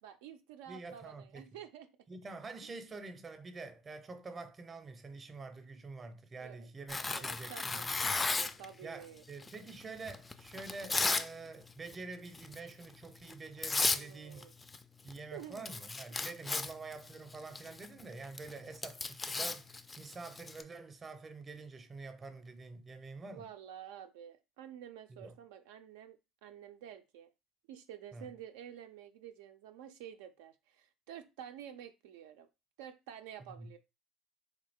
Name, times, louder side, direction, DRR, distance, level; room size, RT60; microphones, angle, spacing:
voice 1, 0.0-1.9 2.6-2.7 6.4-6.7 7.1-8.0 8.4-9.2 13.9-14.5 15.3-15.7 16.5-16.6 23.3-27.3 27.7-32.5 32.8-33.8, right 9 dB, 90° right, 0.4 m, -50 dB
voice 2, 0.7-1.5 2.1-7.9 8.8-14.5 15.0-23.4 25.1-25.4 28.1-28.3 33.5-33.7, right 3 dB, 25° right, 0.6 m, -47 dB
Tearing, 6.9-8.7 9.4-11.3 11.6-11.9 12.3-12.6 13.3-13.4 13.6-14.0 14.3-15.2 15.4-20.6, left 3 dB, 20° left, 0.3 m, -35 dB
3.4 x 2.3 x 3.5 m
supercardioid pair, 105°, 0 cm